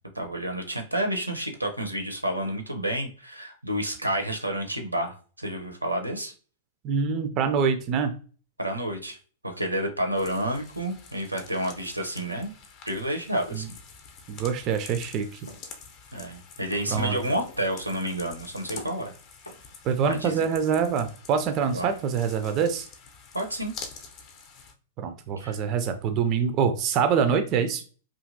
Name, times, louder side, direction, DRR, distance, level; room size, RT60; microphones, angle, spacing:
voice 1, 0.1-6.3 8.6-9.2 9.4-12.5 12.9-13.7 16.1-19.1 20.1-20.4 21.7-21.9 23.3-23.7 25.4-25.6, right 1 dB, 85° right, 4 dB, 0.6 m, -30 dB
voice 2, 6.8-8.1 13.5-13.7 14.3-15.4 16.9-17.2 19.8-22.9 25.0-27.8, right 6 dB, 35° right, 8 dB, 0.3 m, -25 dB
sound 1, 10.1-24.7, left 5 dB, 40° left, 0.6 m, -47 dB
sound 2, 15.5-15.7 16.1-16.4 16.7-17.1 17.5-17.8 18.1-18.4 18.8-19.1 19.5-19.8, left 1 dB, 85° left, 0.5 m, -45 dB
2.7 x 2.5 x 2.5 m, 0.38 s
figure-of-eight pair, 100°, 0 cm